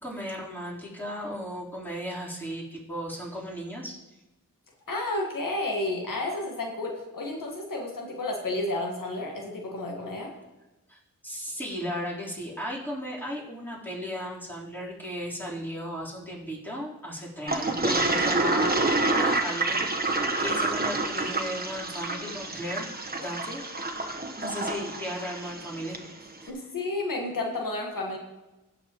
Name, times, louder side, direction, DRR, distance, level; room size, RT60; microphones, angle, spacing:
voice 1, 0.0-4.2 10.9-22.9 23.2-23.6 24.4-26.0 26.4-26.5, equal, 5° left, -7 dB, 4.0 m, -36 dB
voice 2, 4.9-10.3 26.5-28.2, left 2 dB, 90° left, 0 dB, 1.7 m, -31 dB
Toilet flush, 17.5-26.1, right 2 dB, 30° right, 1.3 m, -28 dB
16.0 x 7.6 x 3.1 m, 1.0 s
cardioid pair, 60°, 32 cm